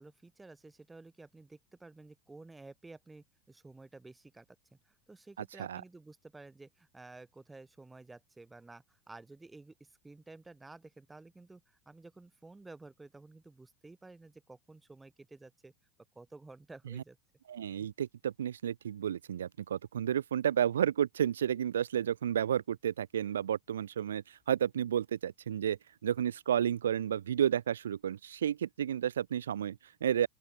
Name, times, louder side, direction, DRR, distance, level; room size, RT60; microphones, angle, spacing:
voice 1, 0.0-15.7 16.2-17.2, right 3 dB, 10° right, 1.8 m, -53 dB
voice 2, 17.5-30.3, right 9 dB, 75° right, 0.3 m, -31 dB
open air
figure-of-eight pair, 85°, 0 cm